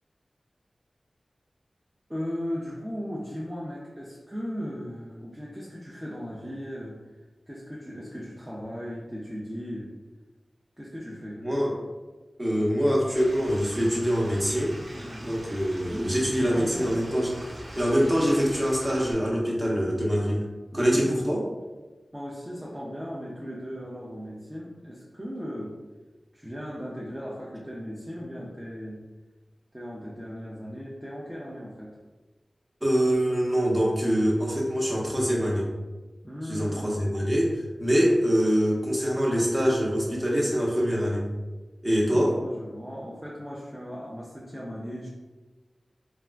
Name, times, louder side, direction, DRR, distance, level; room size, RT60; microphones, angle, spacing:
voice 1, 2.1-7.0 7.5-9.9 10.8-11.4 14.9-15.4 15.8-16.9 20.7-21.2 22.1-25.8 26.3-29.0 29.7-32.0 36.2-37.0 42.1-45.1, equal, 15° right, -5 dB, 0.5 m, -37 dB
voice 2, 11.4-11.7 12.4-14.8 15.2-17.3 17.7-20.4 20.7-21.4 32.8-35.7 36.4-41.2 41.8-42.3, equal, 30° right, -4 dB, 0.9 m, -24 dB
Stream / Liquid, 13.1-19.1, equal, 85° right, 0.7 m, -43 dB
3.4 x 2.4 x 2.2 m, 1.2 s
cardioid pair, 45°, 0 cm